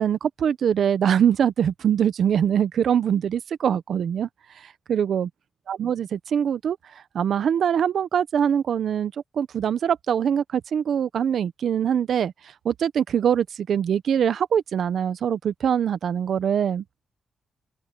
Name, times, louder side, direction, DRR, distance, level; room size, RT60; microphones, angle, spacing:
voice 1, 0.0-4.3 4.9-5.3 5.7-6.8 7.1-12.3 12.6-16.8, right 8 dB, 70° right, 0.9 m, -23 dB
open air
cardioid pair, 95°, 0 cm